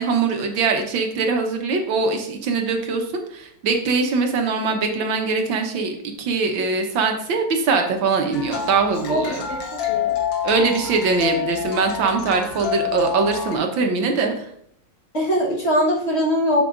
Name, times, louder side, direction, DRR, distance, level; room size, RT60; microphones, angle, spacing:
voice 1, 0.0-9.5 10.4-14.5, right 4 dB, 75° right, 4 dB, 1.7 m, -22 dB
sound 1, 8.3-13.6, left 9 dB, 75° left, 1.5 m, -27 dB
voice 2, 9.1-10.1 15.1-16.6, equal, 35° left, -4 dB, 1.6 m, -22 dB
7.6 x 6.8 x 2.5 m, 0.69 s
omnidirectional pair, 2.1 m